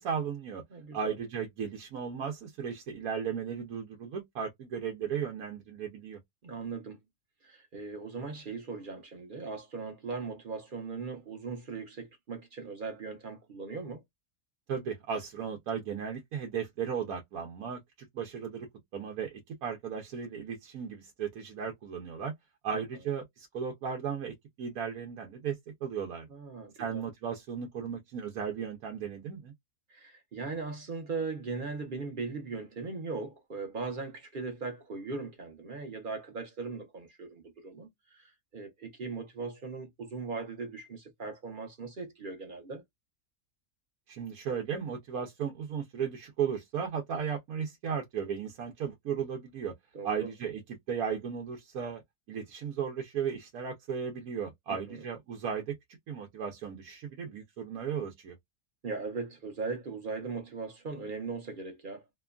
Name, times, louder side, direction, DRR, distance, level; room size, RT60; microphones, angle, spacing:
voice 1, 0.0-0.6 0.9-6.2 14.7-17.8 18.1-22.3 22.6-26.3 26.7-29.5 44.1-49.7 50.0-52.0 52.3-55.8 56.1-58.4, right 7 dB, 90° right, 1.2 m, -35 dB
voice 2, 0.7-1.2 6.4-7.0 7.4-14.0 22.7-22.8 26.3-27.0 29.9-42.8 49.9-50.3 54.7-55.0 58.8-62.0, right 4 dB, 45° right, 0.8 m, -39 dB
2.9 x 2.2 x 2.3 m
omnidirectional pair, 1.5 m